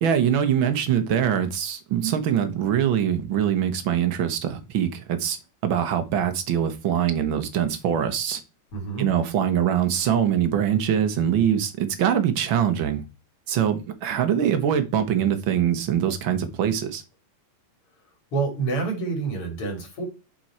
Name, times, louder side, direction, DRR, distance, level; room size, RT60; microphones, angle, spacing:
voice 1, 0.0-5.4 5.6-8.4 9.0-13.0 13.5-17.0, right 9 dB, 60° right, 1.3 m, -23 dB
voice 2, 8.7-9.1 18.3-20.1, right 4 dB, 50° left, 3.5 m, -27 dB
7.6 x 4.5 x 4.3 m
omnidirectional pair, 3.4 m